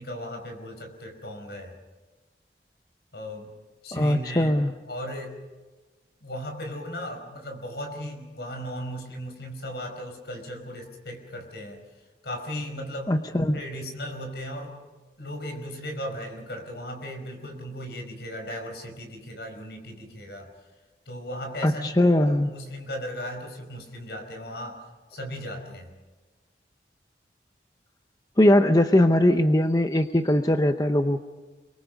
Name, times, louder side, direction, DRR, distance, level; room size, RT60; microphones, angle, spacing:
voice 1, 0.0-1.8 3.1-3.5 3.8-4.6 4.9-5.4 6.2-11.8 12.2-13.2 13.5-14.8 15.2-20.5 21.1-25.9, equal, 70° left, 4 dB, 5.0 m, -37 dB
voice 2, 3.9-4.7 13.1-13.6 21.6-22.5 28.4-31.2, left 1 dB, 20° left, 7 dB, 0.8 m, -20 dB
29.0 x 22.5 x 5.3 m, 1.3 s
head